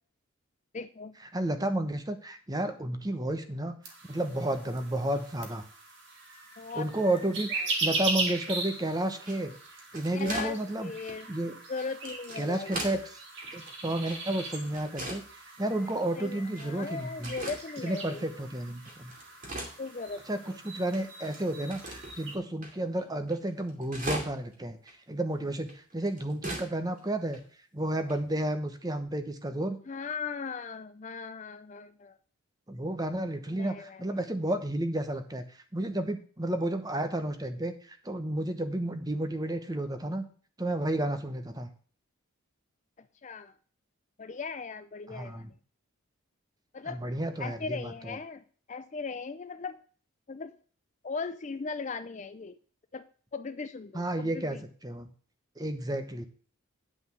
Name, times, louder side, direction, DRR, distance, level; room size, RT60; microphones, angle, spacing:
voice 1, 0.7-1.2 6.6-6.9 7.6-7.7 10.1-11.3 11.7-12.8 16.1-18.3 19.5-20.6 29.9-32.2 33.5-34.2 43.0-43.5 44.2-45.5 46.7-47.0 47.4-48.4 48.7-49.8 50.3-50.5 51.0-52.6 52.9-53.0 53.3-54.6, left 4 dB, 35° left, 11 dB, 0.4 m, -38 dB
voice 2, 1.3-3.8 4.1-5.6 6.7-9.5 9.9-10.9 11.3-11.6 12.4-13.0 13.5-15.2 15.6-17.3 17.8-19.1 20.3-20.4 20.6-24.8 25.1-27.4 27.7-29.8 32.7-40.2 40.6-41.7 45.1-45.5 46.8-48.2 53.9-54.6 54.8-55.1 55.6-56.3, right 1 dB, 15° right, 8 dB, 0.9 m, -31 dB
sound 1, 3.8-22.4, right 3 dB, 55° right, 2.6 m, -39 dB
sound 2, 9.2-10.6 11.0-11.2 11.8-13.0 13.4-14.4 14.7-15.3 15.8-15.9 16.6-16.9 17.2-17.6 18.1-18.2 18.7-20.3 20.6-20.7 20.9-22.2 22.6-22.7 23.0-23.1 23.3-24.5 24.9-25.0 25.7-26.7 27.0-27.1 27.3-27.4 28.1-28.3, right 1 dB, 40° right, 2.4 m, -39 dB
9.6 x 5.3 x 6.9 m, 0.43 s
head